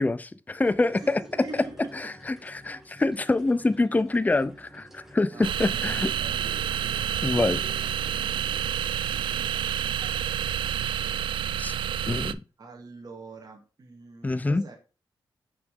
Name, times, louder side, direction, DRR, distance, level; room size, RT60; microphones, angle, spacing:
voice 1, 0.0-1.2 1.9-6.1 7.2-7.6 11.6-11.7 12.0-12.4 14.2-14.6, left 2 dB, 20° left, 0.6 m, -25 dB
sound 1, 0.6-11.1, equal, 5° right, 2.2 m, -51 dB
voice 2, 1.0-1.7 5.3-7.3 12.6-14.8, right 3 dB, 50° right, 2.1 m, -44 dB
sound 2, 5.4-12.3, right 10 dB, 85° right, 0.3 m, -29 dB
6.0 x 6.0 x 3.6 m
cardioid pair, 85°, 8 cm